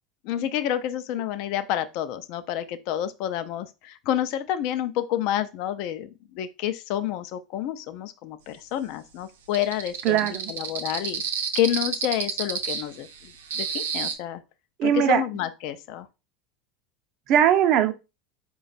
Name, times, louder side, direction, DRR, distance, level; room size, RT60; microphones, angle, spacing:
voice 1, 0.2-6.1 6.3-11.2 11.5-14.4 14.8-16.1, left 11 dB, 60° left, 0.5 m, -29 dB
sound 1, 9.5-14.1, right 7 dB, 90° right, 0.7 m, -30 dB
voice 2, 10.0-10.5 14.8-15.2 17.3-17.9, right 10 dB, 55° right, 0.6 m, -20 dB
4.2 x 2.3 x 4.0 m
supercardioid pair, 105°, 0 cm